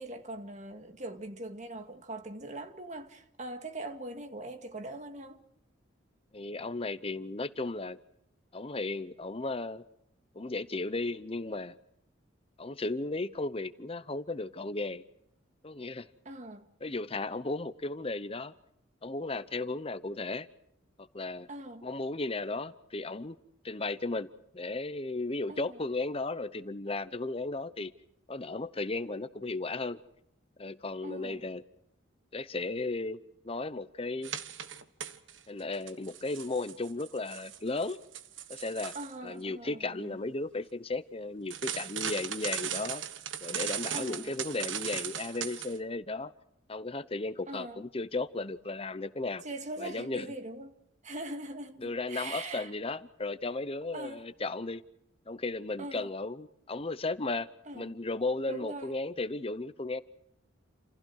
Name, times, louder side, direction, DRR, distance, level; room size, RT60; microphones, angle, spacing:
voice 1, 0.0-5.4 12.7-12.8 16.3-16.7 21.5-21.9 25.5-25.8 31.0-31.4 38.9-40.2 43.9-44.3 47.5-47.8 49.4-50.8 51.0-52.7 53.9-54.3 55.8-56.1 57.7-57.9 58.5-58.9, right 2 dB, 40° right, 2.1 m, -42 dB
voice 2, 6.3-8.0 8.5-9.8 10.3-11.8 12.6-15.0 15.6-16.1 16.8-18.5 19.0-20.5 21.0-21.5 21.8-23.4 23.6-27.9 28.3-30.0 30.6-31.6 32.3-34.4 35.5-38.0 38.5-38.9 39.2-43.0 43.4-46.3 46.7-49.4 49.8-50.3 51.8-54.8 55.3-57.5 57.7-60.0, left 2 dB, 30° left, 0.8 m, -35 dB
sound 1, 34.2-35.4 35.7-39.1 41.5-45.8, right 9 dB, 80° right, 1.4 m, -38 dB
29.5 x 28.0 x 4.7 m
head